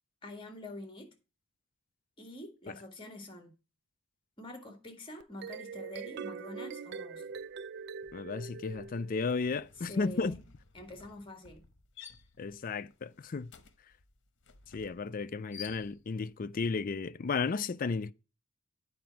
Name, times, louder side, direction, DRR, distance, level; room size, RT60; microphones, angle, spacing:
voice 1, 0.2-1.1 2.2-3.5 4.4-7.3 9.9-10.4 10.7-11.7, left 1 dB, 25° left, 1.8 m, -46 dB
sound 1, 5.2-9.6, right 6 dB, 50° right, 0.4 m, -43 dB
sound 2, 7.3-7.6 7.9-16.3, left 7 dB, 55° left, 1.1 m, -54 dB
voice 2, 8.1-10.4 12.4-13.5 14.7-18.1, left 4 dB, 40° left, 0.4 m, -34 dB
9.5 x 5.1 x 5.7 m
head